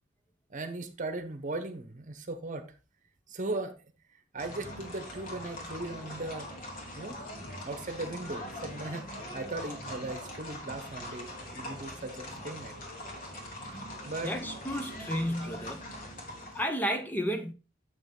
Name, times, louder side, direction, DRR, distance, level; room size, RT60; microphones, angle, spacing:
voice 1, 0.5-2.7 3.3-3.7 4.3-6.5 7.0-7.2 7.6-12.8 14.1-14.3, right 2 dB, 40° right, 1.1 m, -38 dB
sound 1, 4.4-16.6, equal, 45° left, 2.3 m, -42 dB
voice 2, 14.2-15.8 16.5-17.5, equal, 10° left, 0.8 m, -32 dB
7.8 x 6.1 x 3.8 m
head